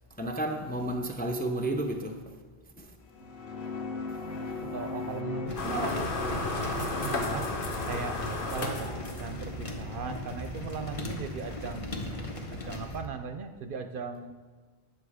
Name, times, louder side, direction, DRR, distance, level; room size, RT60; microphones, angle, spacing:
voice 1, 0.2-2.2 2.8-2.9, right 1 dB, 10° left, 3 dB, 0.5 m, -31 dB
sound 1, 3.0-11.7, left 4 dB, 90° left, 1.3 m, -40 dB
voice 2, 4.6-7.5 7.8-11.9 12.5-14.4, right 5 dB, 60° right, 7 dB, 0.7 m, -38 dB
sound 2, 5.5-13.0, left 1 dB, 35° left, 0.9 m, -38 dB
sound 3, 5.6-9.6, left 3 dB, 60° left, 1.2 m, -33 dB
9.2 x 7.0 x 4.9 m, 1.4 s
omnidirectional pair, 1.0 m